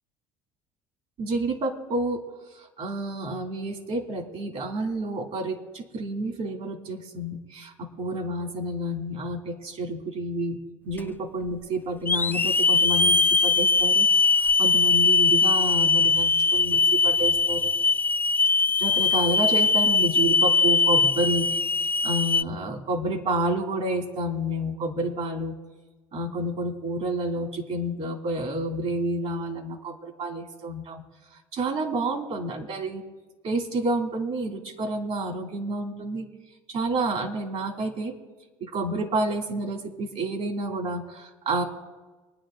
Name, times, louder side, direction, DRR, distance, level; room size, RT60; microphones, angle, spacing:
voice 1, 1.2-2.2 2.5-10.6 10.8-14.1 14.4-17.7 18.8-21.6 22.0-25.5 26.1-31.0 31.5-33.0 33.4-36.3 36.7-38.1 38.6-41.6, right 1 dB, 60° right, 3 dB, 2.8 m, -29 dB
Hiss / Alarm, 11.0-11.1 12.1-22.4, left 4 dB, 15° left, 0.3 m, -21 dB
24.5 x 9.9 x 3.8 m, 1.2 s
supercardioid pair, 90°, 13 cm